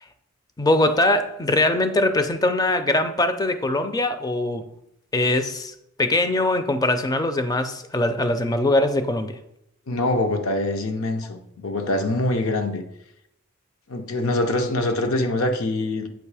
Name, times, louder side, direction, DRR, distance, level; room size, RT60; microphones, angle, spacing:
voice 1, 0.6-4.6 5.1-9.4, left 2 dB, 20° left, 0.4 m, -22 dB
voice 2, 9.9-12.8 13.9-16.1, left 2 dB, 80° left, 0.8 m, -24 dB
7.6 x 2.9 x 4.8 m
head